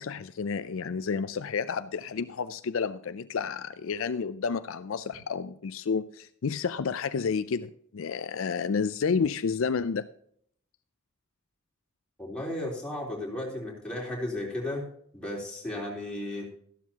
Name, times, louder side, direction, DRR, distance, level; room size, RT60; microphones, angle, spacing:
voice 1, 0.0-10.1, left 5 dB, 65° left, 12 dB, 0.4 m, -30 dB
voice 2, 12.2-14.8 15.1-16.5, left 1 dB, 5° left, -4 dB, 3.5 m, -34 dB
13.5 x 12.0 x 2.9 m, 0.65 s
head